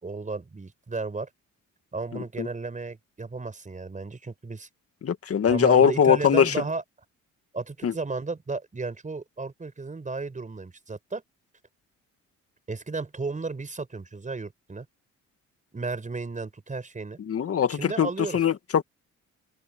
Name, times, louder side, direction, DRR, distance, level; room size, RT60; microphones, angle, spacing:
voice 1, 0.0-1.3 1.9-4.7 5.5-6.8 7.5-11.2 12.7-14.9 15.7-17.2 17.7-18.4, right 3 dB, 25° right, 5.3 m, -34 dB
voice 2, 2.1-2.5 5.0-6.6 7.8-7.9 17.3-18.8, left 8 dB, 50° left, 2.1 m, -22 dB
open air
cardioid pair, 90°, 30 cm